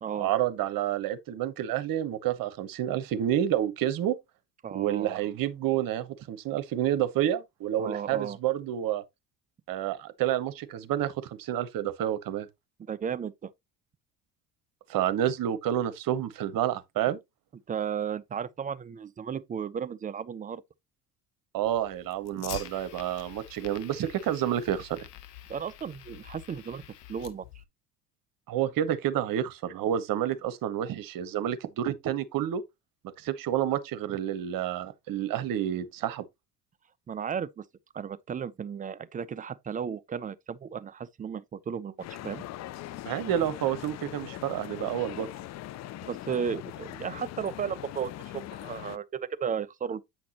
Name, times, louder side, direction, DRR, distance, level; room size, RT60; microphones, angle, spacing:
voice 1, 0.1-4.1 4.7-9.0 9.7-12.5 14.9-17.2 21.5-25.0 28.5-32.6 33.2-36.2 43.0-45.3, right 11 dB, 45° right, 1.1 m, -29 dB
voice 2, 4.6-5.2 7.8-8.4 12.9-13.5 17.7-20.6 25.5-26.8 27.1-27.4 37.1-37.6 37.9-42.0 42.2-42.4 46.0-50.0, right 7 dB, 15° right, 0.5 m, -34 dB
Fire, 21.6-27.6, left 12 dB, 75° left, 1.1 m, -46 dB
sound 1, 42.0-49.0, left 14 dB, 35° left, 0.5 m, -41 dB
8.8 x 5.9 x 2.9 m
figure-of-eight pair, 65°, 48 cm